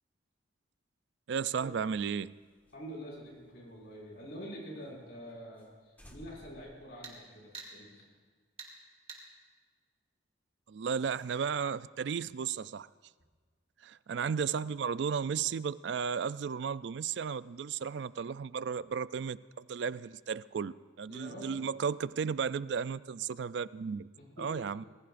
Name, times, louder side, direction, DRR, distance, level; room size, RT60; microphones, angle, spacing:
voice 1, 1.3-2.3 10.7-12.9 13.8-24.1 24.4-24.8, right 6 dB, 65° right, 17 dB, 0.3 m, -34 dB
sound 1, 1.7-4.5 4.8-4.9 5.2-5.3 5.6-5.7 6.0-7.7, equal, 10° left, 1.5 m, -59 dB
voice 2, 2.7-8.0 21.1-21.7 24.2-24.6, equal, 60° left, -3 dB, 6.0 m, -46 dB
sound 2, 7.0-7.2 7.5-7.7 8.6-8.7 9.1-9.2, right 4 dB, 30° right, 2.5 m, -45 dB
26.0 x 20.0 x 2.5 m, 1.5 s
head